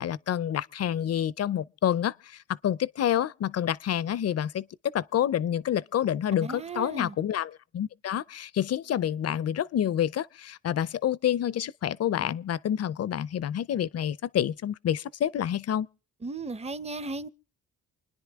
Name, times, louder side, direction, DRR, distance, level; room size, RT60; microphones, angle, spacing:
voice 1, 0.0-2.4 2.6-4.6 4.9-15.9, left 10 dB, 50° left, 0.6 m, -28 dB
voice 2, 6.4-7.2 16.2-17.3, right 3 dB, 20° right, 0.7 m, -35 dB
28.5 x 10.0 x 3.5 m
cardioid pair, 90°, 33 cm